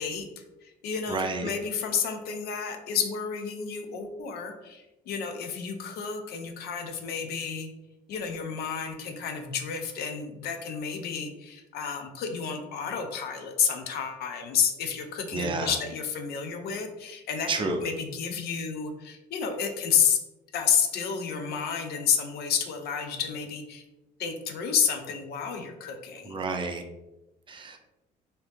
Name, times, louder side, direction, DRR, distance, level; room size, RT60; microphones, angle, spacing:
voice 1, 0.0-7.7 8.1-20.2 20.5-23.8 24.2-26.4, left 7 dB, 70° left, 5 dB, 0.5 m, -30 dB
voice 2, 1.1-1.5 15.3-15.7 17.5-17.8 26.3-26.8 27.5-27.8, right 3 dB, 30° right, 4 dB, 0.5 m, -30 dB
2.8 x 2.7 x 3.4 m, 1.0 s
cardioid pair, 110°, 17 cm